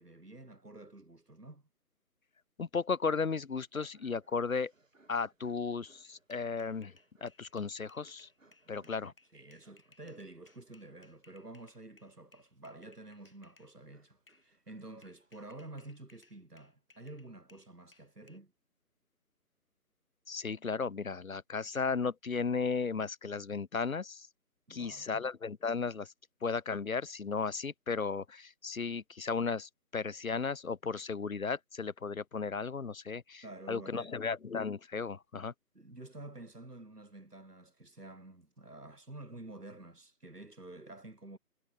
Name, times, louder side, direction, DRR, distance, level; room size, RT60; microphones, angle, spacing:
voice 1, 0.0-1.7 8.6-18.5 24.7-25.3 33.4-34.2 35.7-41.4, right 2 dB, 80° right, 7.9 m, -50 dB
voice 2, 2.6-4.7 5.1-6.9 7.2-8.3 8.7-9.1 20.3-24.3 24.7-26.1 26.4-33.4 33.7-35.5, left 5 dB, 60° left, 0.7 m, -35 dB
sound 1, 3.3-16.0, right 2 dB, 55° right, 7.8 m, -68 dB
sound 2, 6.0-13.7 14.3-14.5 15.0-18.4, left 3 dB, 35° left, 6.2 m, -65 dB
figure-of-eight pair, 175°, 46 cm